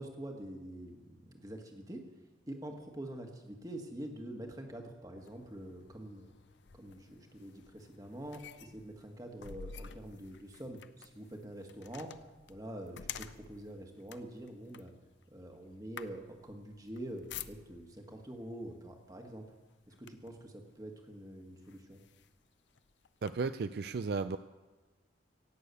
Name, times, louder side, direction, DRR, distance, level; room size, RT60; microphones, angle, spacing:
voice 1, 0.0-2.0 2.5-6.3 6.7-12.1 12.5-14.9 15.3-19.4 19.9-22.0, right 1 dB, 20° right, 3 dB, 1.5 m, -46 dB
sound 1, 5.2-18.0 18.8-19.1 19.5-20.5 21.1-21.2 21.6-23.3, left 8 dB, 70° left, 0.5 m, -50 dB
voice 2, 23.2-24.4, right 4 dB, 55° right, 11 dB, 0.4 m, -34 dB
17.0 x 6.9 x 8.3 m, 1.2 s
head